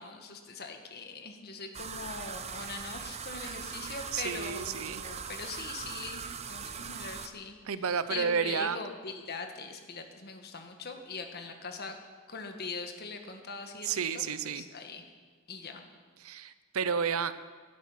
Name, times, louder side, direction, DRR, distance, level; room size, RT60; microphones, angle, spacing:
voice 1, 0.0-7.6 8.1-12.0 12.3-13.9 14.1-14.2 14.5-15.0 15.5-15.8, left 4 dB, 45° left, 5 dB, 1.5 m, -41 dB
sound 1, 1.7-7.3, right 6 dB, 30° right, 0.7 m, -40 dB
voice 2, 4.1-5.0 7.7-8.8 13.8-14.6 16.2-17.3, right 6 dB, 75° right, 14 dB, 0.7 m, -31 dB
17.5 x 11.0 x 5.7 m, 1.5 s
head